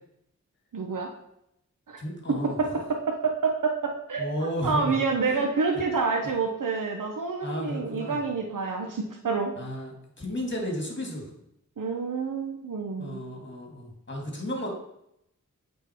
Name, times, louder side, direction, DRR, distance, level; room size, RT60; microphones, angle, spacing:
voice 1, 0.7-1.1 1.9-2.0 2.4-9.5 11.8-13.2, right 4 dB, 80° right, 2 dB, 0.8 m, -28 dB
voice 2, 2.0-2.6 4.2-5.4 7.4-8.2 9.6-11.3 13.0-14.7, equal, 35° left, 0 dB, 2.3 m, -33 dB
8.3 x 3.8 x 4.5 m, 0.79 s
wide cardioid pair, 45°, 32 cm